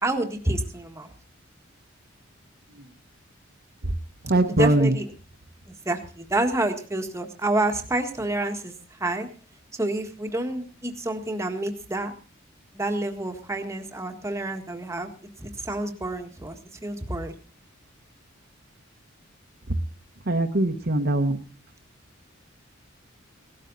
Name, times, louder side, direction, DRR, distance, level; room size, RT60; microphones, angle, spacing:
voice 1, 0.0-1.1 4.5-5.1 5.8-8.7 9.0-9.3 9.8-12.1 12.7-15.1 15.4-16.6 16.8-17.3, right 2 dB, 15° right, 4 dB, 1.7 m, -28 dB
voice 2, 4.3-4.9 20.3-21.4, right 1 dB, 50° right, 5 dB, 1.3 m, -21 dB
17.5 x 13.0 x 4.1 m, 0.36 s
head